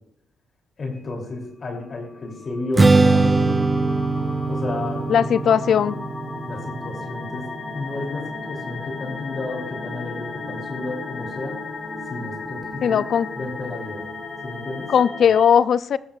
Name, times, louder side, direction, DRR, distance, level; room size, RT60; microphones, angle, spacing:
voice 1, 0.8-3.6 4.5-5.0 6.5-11.6 12.1-13.0 13.4-14.1 14.4-14.9, left 2 dB, 45° left, 1 dB, 3.0 m, -32 dB
sound 1, 2.2-15.4, left 3 dB, 25° left, 4.2 m, -35 dB
Strum, 2.7-9.0, right 3 dB, 25° right, 0.6 m, -22 dB
voice 2, 5.1-6.0 12.8-13.3 14.9-16.0, left 8 dB, 60° left, 16 dB, 0.4 m, -18 dB
17.5 x 13.0 x 2.4 m, 0.77 s
cardioid pair, 90°, 0 cm